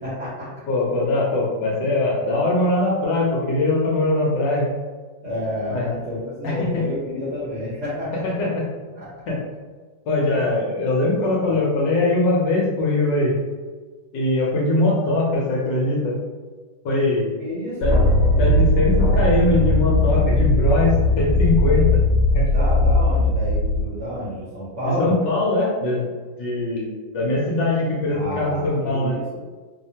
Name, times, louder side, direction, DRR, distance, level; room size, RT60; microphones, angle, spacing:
voice 1, 0.0-0.5 5.2-8.2 9.0-9.1 10.2-10.4 11.3-11.6 17.4-18.4 22.5-25.1 28.1-29.4, left 1 dB, 50° right, -10 dB, 0.9 m, -30 dB
voice 2, 0.7-4.7 5.7-5.9 6.4-6.8 8.2-8.7 9.3-9.4 10.1-13.4 14.1-16.1 16.8-17.3 17.8-17.9 18.4-22.0 22.3-22.4 24.8-26.1 26.4-29.2, left 2 dB, 70° left, -4 dB, 1.3 m, -21 dB
sound 1, 17.8-23.8, left 1 dB, 35° left, 1.1 m, -18 dB
3.3 x 2.1 x 2.7 m, 1.4 s
omnidirectional pair, 2.2 m